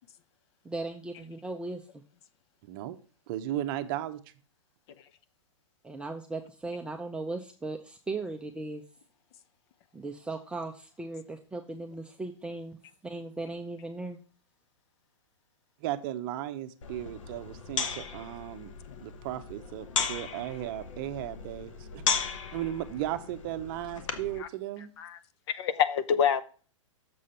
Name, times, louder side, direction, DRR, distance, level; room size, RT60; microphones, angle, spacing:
voice 1, 0.6-2.0 5.8-8.8 9.9-14.2, right 2 dB, 5° right, 0.5 m, -37 dB
voice 2, 2.6-3.0 3.3-4.2 15.8-18.7 19.0-22.0 22.5-24.9, right 13 dB, 40° right, 0.7 m, -35 dB
sound 1, 16.8-24.4, left 6 dB, 70° left, 1.1 m, -36 dB
voice 3, 25.5-26.4, left 8 dB, 50° left, 0.6 m, -26 dB
6.9 x 4.9 x 5.6 m
hypercardioid pair, 125°, 17 cm